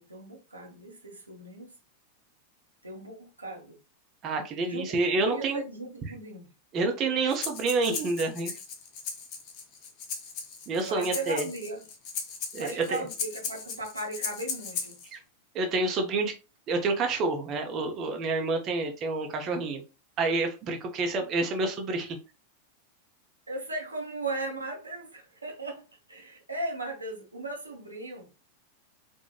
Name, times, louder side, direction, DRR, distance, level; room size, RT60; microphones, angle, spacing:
voice 1, 0.0-1.7 2.8-3.8 4.6-6.5 10.8-11.8 12.6-15.0 23.5-28.3, right 2 dB, 80° right, 0.7 m, -37 dB
voice 2, 4.2-5.6 6.7-8.6 10.7-11.5 12.5-13.0 15.1-15.2 15.5-16.3 16.7-19.8 20.2-22.2, right 3 dB, 30° right, 0.5 m, -28 dB
Breathing, 7.3-15.1, left 5 dB, 40° left, 0.5 m, -37 dB
2.8 x 2.1 x 2.3 m
figure-of-eight pair, 90°, 0 cm